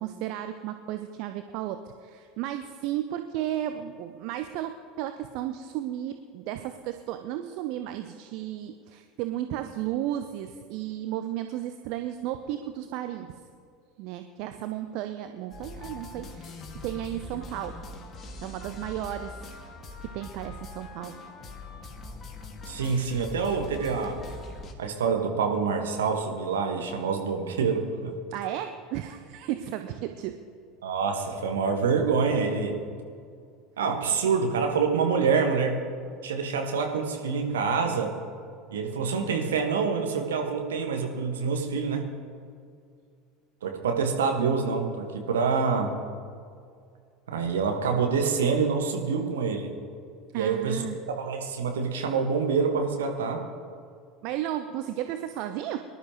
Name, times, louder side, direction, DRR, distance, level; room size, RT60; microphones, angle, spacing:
voice 1, 0.0-13.3 14.0-17.8 18.4-19.4 20.0-21.2 28.3-30.4 50.3-51.0 54.2-55.8, right 12 dB, 55° right, 8 dB, 0.6 m, -34 dB
sound 1, 15.5-24.7, left 3 dB, 30° left, 2.0 m, -42 dB
voice 2, 22.7-24.2 24.8-28.1 30.8-32.8 33.8-35.8 36.2-38.1 38.7-42.1 43.6-46.0 47.3-49.7 50.3-53.4, right 5 dB, 70° right, 3 dB, 1.6 m, -26 dB
24.0 x 12.0 x 3.1 m, 2.2 s
figure-of-eight pair, 70°, 0 cm